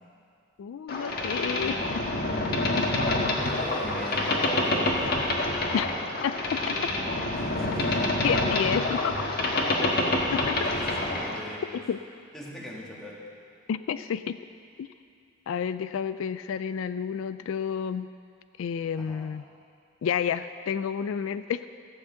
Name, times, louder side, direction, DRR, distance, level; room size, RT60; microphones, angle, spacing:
voice 1, 0.6-2.0 2.7-3.0 5.7-5.9 6.2-6.8 8.2-9.3 9.8-9.9 10.3-10.6 11.7-12.0 13.7-14.4 14.8-14.9 15.5-18.1 18.6-19.4 20.0-21.7, left 7 dB, 75° left, 12 dB, 0.3 m, -30 dB
Boat Water vehicle, 0.9-11.4, left 2 dB, 50° left, 1.4 m, -27 dB
voice 2, 3.3-5.2 7.3-8.1 10.7-11.9 12.3-13.2 19.0-19.3, equal, 5° left, -4 dB, 1.6 m, -40 dB
15.0 x 5.9 x 7.7 m, 2.3 s
head